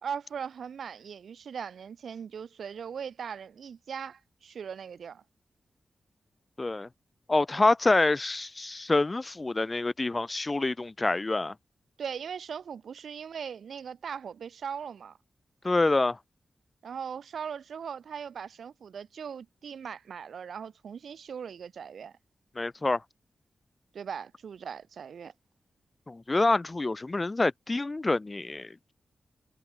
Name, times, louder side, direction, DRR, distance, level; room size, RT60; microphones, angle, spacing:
voice 1, 0.0-5.2 12.0-15.2 16.8-22.1 23.9-25.3, right 7 dB, 85° right, 1.8 m, -39 dB
voice 2, 6.6-6.9 7.3-11.5 15.6-16.2 22.6-23.0 26.1-28.9, left 2 dB, 30° left, 0.4 m, -26 dB
cardioid pair, 80°, 0 cm